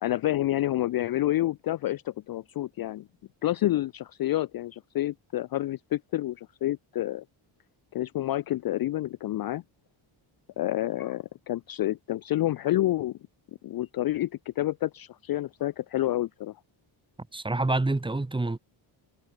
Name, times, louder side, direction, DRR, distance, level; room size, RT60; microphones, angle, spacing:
voice 1, 0.0-3.1 3.4-7.2 7.9-9.6 10.6-13.2 13.6-16.5, left 14 dB, 50° left, 0.4 m, -29 dB
voice 2, 17.3-18.6, right 2 dB, 10° right, 1.5 m, -27 dB
cardioid pair, 155°, 49 cm